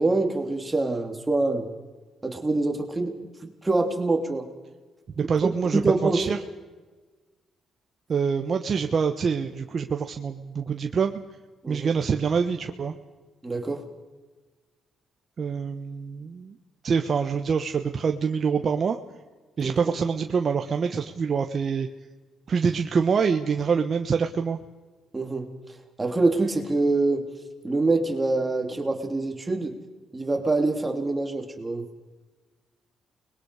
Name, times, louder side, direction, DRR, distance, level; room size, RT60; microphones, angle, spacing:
voice 1, 0.0-1.7 2.2-3.1 3.4-4.4 5.7-6.2 11.6-11.9 13.4-13.8 19.6-19.8 25.1-25.5 26.0-27.2 27.6-29.7 30.1-31.8, right 3 dB, 20° right, 3 dB, 3.1 m, -25 dB
voice 2, 5.2-6.4 8.1-11.1 11.7-12.9 15.4-16.6 16.8-19.0 19.6-21.9 22.5-24.6, right 6 dB, 45° right, 5 dB, 1.1 m, -25 dB
29.5 x 21.5 x 4.9 m, 1.3 s
cardioid pair, 90°, 0 cm